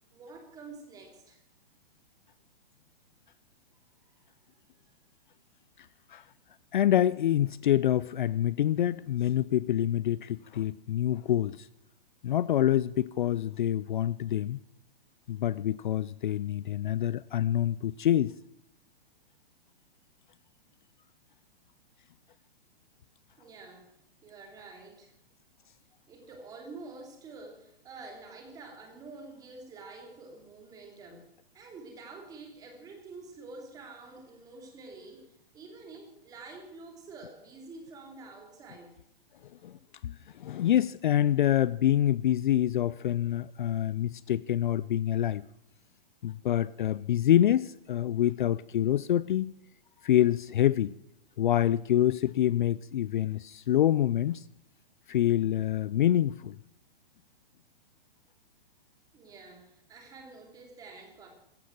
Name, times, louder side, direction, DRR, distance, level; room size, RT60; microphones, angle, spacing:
voice 1, 0.1-1.4 4.5-4.6 23.4-23.9 24.2-25.1 26.1-31.3 31.5-39.0 59.1-61.3, right 3 dB, 10° right, 2.9 m, -48 dB
voice 2, 5.8-6.2 6.7-11.7 12.2-14.6 15.3-18.3 39.6-45.4 46.2-49.5 50.0-50.9 51.4-54.5 55.1-56.6, left 11 dB, 55° left, 0.5 m, -26 dB
15.5 x 15.0 x 6.0 m
hypercardioid pair, 175°, 30 cm